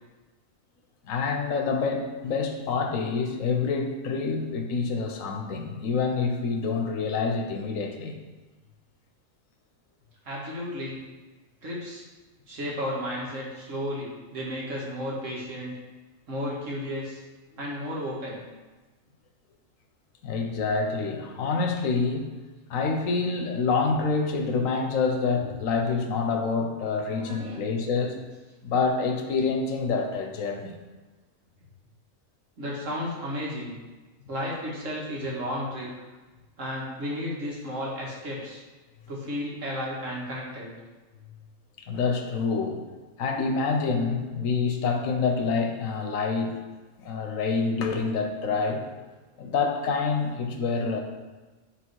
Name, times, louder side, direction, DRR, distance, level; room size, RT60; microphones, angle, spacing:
voice 1, 1.0-8.2 20.2-22.3 22.7-28.2 28.6-30.8 34.2-34.3 41.9-42.8 43.2-46.6 47.0-48.9 49.4-51.0, left 4 dB, 85° left, 4 dB, 1.2 m, -27 dB
voice 2, 10.3-11.0 11.6-12.0 12.5-15.7 16.3-17.2 17.6-18.4 27.1-27.6 32.6-33.8 34.3-35.9 36.6-38.6 39.1-40.7, equal, 70° right, -4 dB, 1.9 m, -33 dB
8.1 x 3.6 x 4.7 m, 1.2 s
omnidirectional pair, 1.3 m